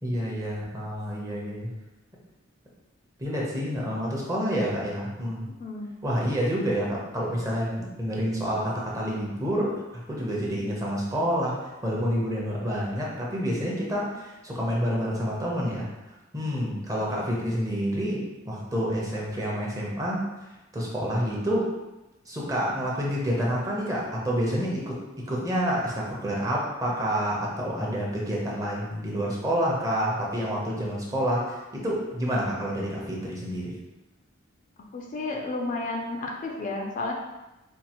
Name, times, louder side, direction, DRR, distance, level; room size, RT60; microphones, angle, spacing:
voice 1, 0.0-1.7 3.2-5.5 6.0-9.8 10.1-15.9 16.3-20.2 20.7-21.7 22.3-24.9 25.3-33.7, equal, 15° right, -4 dB, 0.8 m, -28 dB
voice 2, 5.6-5.9 34.9-37.1, left 2 dB, 40° left, 0 dB, 0.4 m, -32 dB
4.5 x 2.4 x 2.9 m, 1.0 s
head